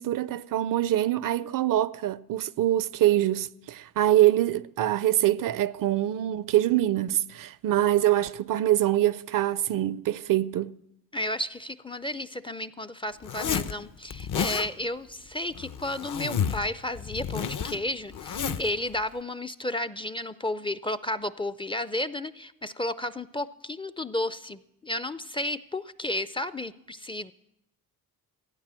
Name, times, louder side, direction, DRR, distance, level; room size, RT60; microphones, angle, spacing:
voice 1, 0.0-10.8, right 13 dB, 60° right, 0.5 m, -24 dB
voice 2, 11.1-27.3, left 1 dB, 15° left, 0.4 m, -32 dB
Zipper (clothing), 13.2-13.7 14.1-14.7 15.5-16.7 16.9-18.7, left 7 dB, 55° left, 0.9 m, -31 dB
15.5 x 9.4 x 7.5 m
cardioid pair, 85°, 37 cm